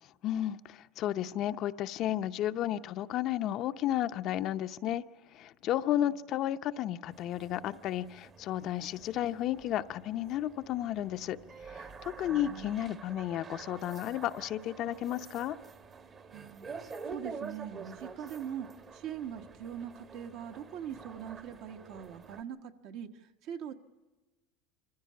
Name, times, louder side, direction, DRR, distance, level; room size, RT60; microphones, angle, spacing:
voice 1, 0.2-5.0 5.3-11.4 11.7-15.6, left 12 dB, 50° left, 10 dB, 0.6 m, -33 dB
sound 1, 7.1-22.4, right 5 dB, 30° right, 1.1 m, -48 dB
voice 2, 12.2-12.9 16.3-18.7 18.9-23.1 23.4-23.7, right 9 dB, 60° right, 6 dB, 1.3 m, -42 dB
26.0 x 15.0 x 8.5 m, 1.3 s
supercardioid pair, 135°, 0 cm